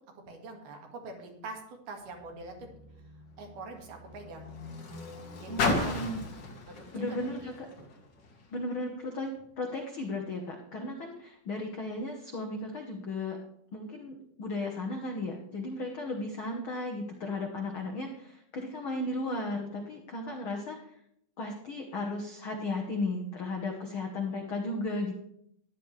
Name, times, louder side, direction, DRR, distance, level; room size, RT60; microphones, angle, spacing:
voice 1, 0.3-2.7 3.4-4.5 5.4-6.0 6.7-7.9, right 3 dB, 65° right, 2 dB, 3.1 m, -44 dB
Car, 2.0-8.6 9.4-9.5, left 3 dB, 60° left, 1.1 m, -36 dB
voice 2, 5.5-6.2 6.9-7.5 8.5-9.3 9.6-13.4 13.7-20.8 21.4-25.1, left 2 dB, 85° left, 1 dB, 1.1 m, -35 dB
14.0 x 11.0 x 3.3 m, 0.74 s
omnidirectional pair, 4.2 m